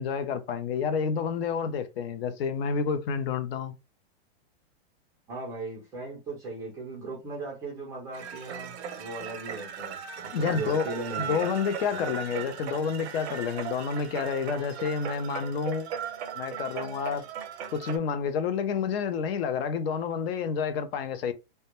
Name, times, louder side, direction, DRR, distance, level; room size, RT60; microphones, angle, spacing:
voice 1, 0.0-3.7 10.3-10.9 11.2-15.9 16.4-17.2 17.7-21.3, left 6 dB, 65° left, 0.5 m, -29 dB
voice 2, 5.3-11.5 11.9-12.1, right 3 dB, 10° right, 0.3 m, -38 dB
sound 1, 8.1-18.0, right 8 dB, 85° right, 0.6 m, -38 dB
2.1 x 2.1 x 2.8 m
supercardioid pair, 160°, 32 cm